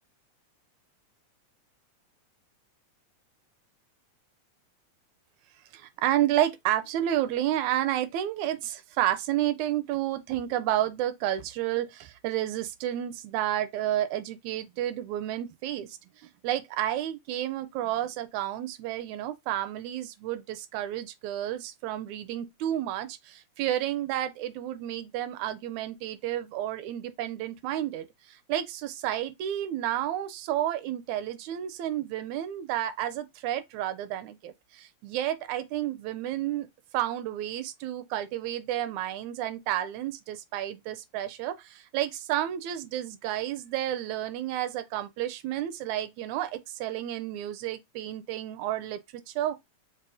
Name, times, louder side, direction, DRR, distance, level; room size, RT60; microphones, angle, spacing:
voice 1, 5.7-36.7 36.9-49.6, right 12 dB, 80° right, 1.8 m, -31 dB
5.3 x 2.0 x 2.5 m
omnidirectional pair, 3.4 m